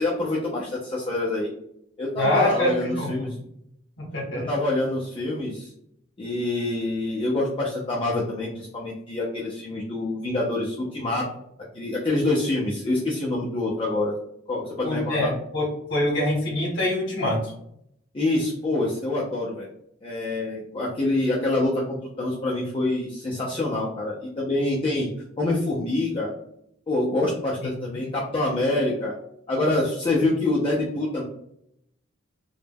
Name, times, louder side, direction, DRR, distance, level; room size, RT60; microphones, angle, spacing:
voice 1, 0.0-1.5 2.0-3.4 4.3-5.7 6.2-11.3 11.7-14.1 14.5-15.3 18.1-19.7 20.0-25.1 25.4-26.3 26.9-29.1 29.5-31.3, left 2 dB, 25° left, -4 dB, 0.4 m, -26 dB
voice 2, 2.2-3.3 4.0-4.5 14.8-17.5, left 1 dB, 60° left, -4 dB, 0.8 m, -25 dB
2.1 x 2.1 x 3.3 m, 0.74 s
head